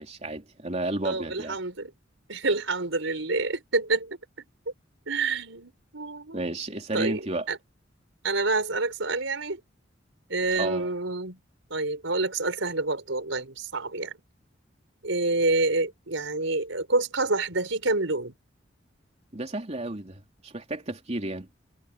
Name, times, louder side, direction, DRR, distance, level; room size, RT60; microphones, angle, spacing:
voice 1, 0.0-1.6 6.3-7.5 10.5-10.9 19.3-21.5, right 2 dB, 35° right, 3.3 m, -32 dB
voice 2, 1.0-1.9 2.3-4.2 5.1-6.4 6.9-7.2 7.5-7.6 8.2-9.6 10.3-11.4 11.7-14.2 15.0-18.3, right 3 dB, 80° right, 4.8 m, -27 dB
head